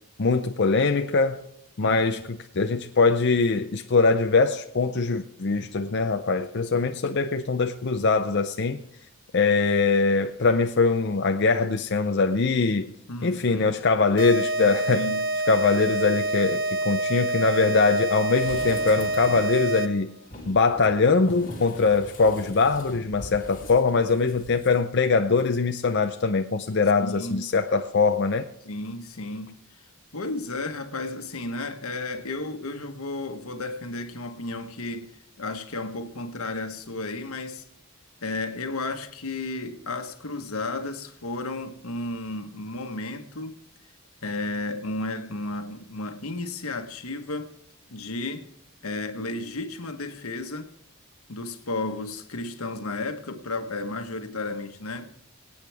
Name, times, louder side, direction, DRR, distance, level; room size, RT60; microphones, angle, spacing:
voice 1, 0.2-1.4 1.8-8.8 9.3-12.9 13.2-15.0 15.5-20.1 20.5-28.5, left 4 dB, 55° left, 0.6 m, -22 dB
voice 2, 1.8-2.2 13.1-13.7 14.6-15.3 27.0-27.5 28.6-29.6 30.1-35.1 35.4-37.6 38.2-43.6 44.2-47.5 47.9-48.5 48.8-50.7 51.3-55.1, left 2 dB, 85° left, 1.3 m, -33 dB
sound 1, 14.2-20.1, right 2 dB, 45° right, 1.0 m, -27 dB
sound 2, 18.3-19.6 20.2-24.7 25.0-25.1, left 1 dB, 35° left, 2.6 m, -41 dB
24.0 x 8.7 x 3.5 m
head